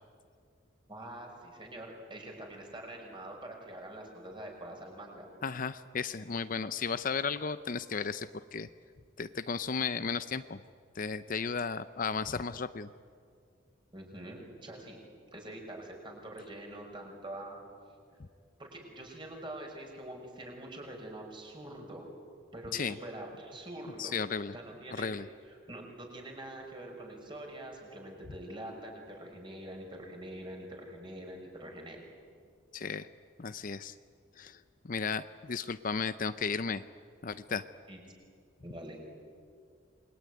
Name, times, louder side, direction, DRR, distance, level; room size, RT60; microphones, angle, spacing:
voice 1, 0.9-5.3 13.9-15.0 15.3-17.6 18.6-22.0 22.5-24.2 24.5-25.1 25.4-32.0 37.9-38.0 38.6-39.0, right 1 dB, 25° right, 1 dB, 5.8 m, -45 dB
voice 2, 5.4-8.7 9.2-10.6 11.0-12.9 18.2-18.3 22.7-23.0 24.0-24.5 25.0-25.3 32.7-33.1 33.4-33.9 34.4-36.8 37.2-37.6, left 5 dB, 40° left, 12 dB, 0.6 m, -34 dB
28.0 x 22.0 x 9.6 m, 2.2 s
head